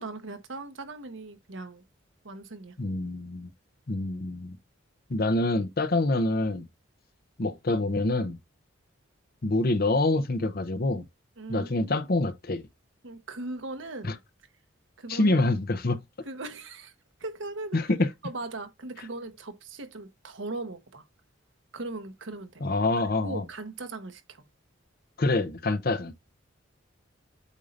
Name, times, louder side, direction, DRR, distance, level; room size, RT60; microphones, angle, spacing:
voice 1, 0.0-1.8 2.2-2.8 11.4-12.1 13.0-14.2 15.0-15.4 16.2-16.9 17.2-17.8 18.2-21.0 21.7-22.8 23.2-24.4, right 2 dB, 70° right, 1.1 m, -39 dB
voice 2, 2.8-3.5 3.9-4.6 5.1-6.7 7.4-8.4 9.4-11.1 11.5-12.6 14.0-14.1 15.1-16.0 17.7-18.1 22.6-23.4 25.2-26.1, left 2 dB, 50° left, 0.8 m, -26 dB
8.3 x 2.8 x 5.1 m
head